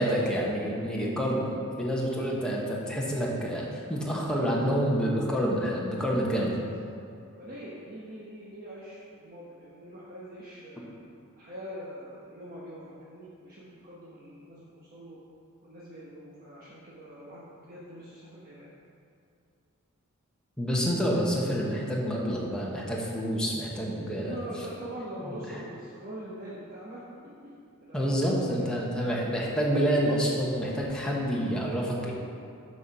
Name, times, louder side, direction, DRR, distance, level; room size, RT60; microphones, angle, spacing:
voice 1, 0.0-1.4 1.8-6.5 20.6-24.4 27.9-32.1, equal, 5° left, -4 dB, 1.1 m, -28 dB
voice 2, 1.2-1.5 6.4-6.7 7.4-10.9 11.3-15.2 15.6-18.7 24.2-27.3 27.8-28.7, equal, 40° right, -7 dB, 1.1 m, -43 dB
7.1 x 5.5 x 5.9 m, 2.5 s
head